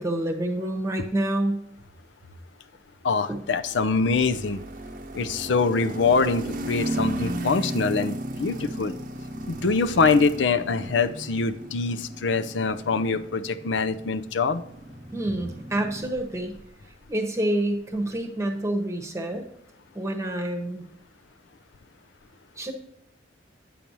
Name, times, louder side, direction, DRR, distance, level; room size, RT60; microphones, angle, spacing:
voice 1, 0.0-1.6 3.3-3.4 5.2-5.3 15.1-16.5 17.1-19.5 19.9-20.8 22.6-22.7, right 1 dB, 15° right, 4 dB, 1.0 m, -27 dB
voice 2, 3.0-4.6 5.1-8.9 9.5-14.6, left 4 dB, 75° left, 9 dB, 0.6 m, -24 dB
sound 1, 3.5-16.7, right 1 dB, 45° right, 0.7 m, -35 dB
8.6 x 6.9 x 3.0 m, 0.76 s
head